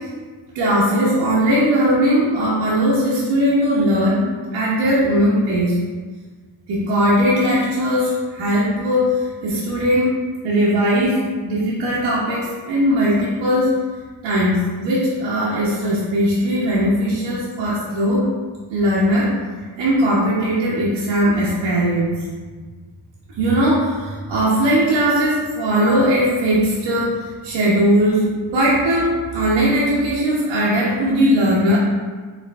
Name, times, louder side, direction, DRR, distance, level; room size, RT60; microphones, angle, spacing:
voice 1, 0.5-4.2 4.5-5.8 6.7-10.1 10.4-13.7 14.2-18.3 18.7-19.3 19.8-22.3 23.4-31.8, equal, 70° right, -8 dB, 1.2 m, -19 dB
4.9 x 3.0 x 3.5 m, 1.4 s
cardioid pair, 115°, 48 cm